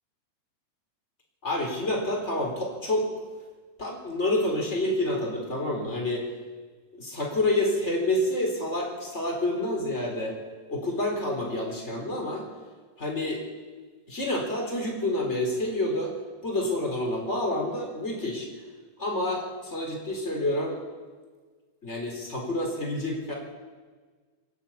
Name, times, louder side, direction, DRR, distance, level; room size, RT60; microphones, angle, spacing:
voice 1, 1.4-3.1 3.8-6.3 6.9-10.4 10.7-12.4 13.0-13.4 14.1-16.1 16.4-18.5 19.0-20.8 21.8-23.3, left 1 dB, 15° left, -1 dB, 3.8 m, -28 dB
26.5 x 11.0 x 8.8 m, 1.4 s
omnidirectional pair, 4.9 m